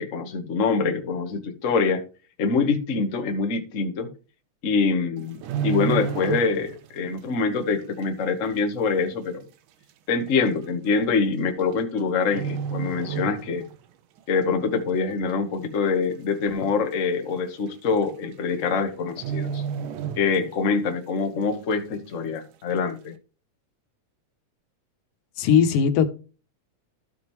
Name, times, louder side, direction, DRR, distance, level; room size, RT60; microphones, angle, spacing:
voice 1, 0.0-2.0 2.4-4.1 4.6-9.4 10.1-13.6 14.3-19.6 20.2-23.1, left 4 dB, 50° left, 0.8 m, -25 dB
sound 1, 5.2-6.9 7.2-7.5 8.0-8.1 9.0-9.1 9.3-9.4 10.3-10.5 11.6-12.0 12.3-13.8 14.2-14.4 14.9-15.4 15.8-15.9 16.1-16.2 16.6-16.7 17.7-17.8 18.0-18.3 18.6-18.7 19.1-20.8 21.1-21.2, right 7 dB, 80° right, 2.4 m, -31 dB
voice 2, 25.4-26.1, left 7 dB, 90° left, 2.7 m, -18 dB
13.5 x 5.5 x 3.1 m
omnidirectional pair, 3.7 m